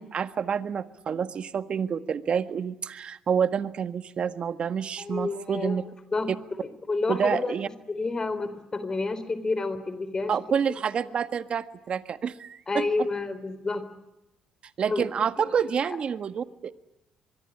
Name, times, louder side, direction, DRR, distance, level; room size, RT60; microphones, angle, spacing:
voice 1, 0.0-5.8 7.1-7.7 10.3-13.1 14.8-16.7, right 7 dB, 55° right, 11 dB, 1.6 m, -28 dB
voice 2, 5.0-5.8 6.1-6.3 6.6-7.6 7.9-10.3 12.7-14.0 14.9-15.0 15.4-15.5 15.9-16.0, left 3 dB, 30° left, 13 dB, 3.5 m, -29 dB
24.5 x 22.5 x 9.9 m, 0.95 s
supercardioid pair, 65°, 2 cm